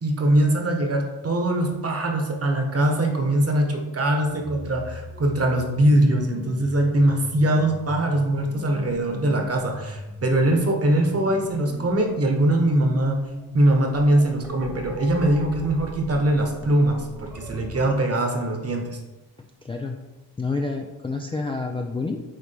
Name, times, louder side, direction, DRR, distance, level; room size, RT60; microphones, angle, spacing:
voice 1, 0.0-13.2 13.5-19.0, right 1 dB, 35° right, 2 dB, 1.2 m, -22 dB
sound 1, 4.2-18.0, left 1 dB, 5° right, 1.0 m, -39 dB
voice 2, 19.6-20.0 20.4-22.2, left 3 dB, 15° left, 2 dB, 0.4 m, -28 dB
8.9 x 3.2 x 3.4 m, 1.1 s
cardioid pair, 95°, 42 cm